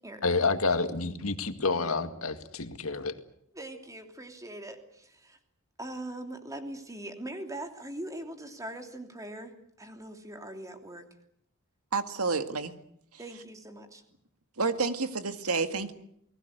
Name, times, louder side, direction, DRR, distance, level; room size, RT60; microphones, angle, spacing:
voice 1, 0.2-3.1, left 3 dB, 70° left, 2.1 m, -29 dB
voice 2, 3.5-5.4 5.8-11.1 13.2-14.0, right 1 dB, 15° right, 3.0 m, -41 dB
voice 3, 11.9-12.7 14.6-15.9, right 4 dB, 90° right, 2.0 m, -29 dB
29.0 x 19.5 x 8.1 m
head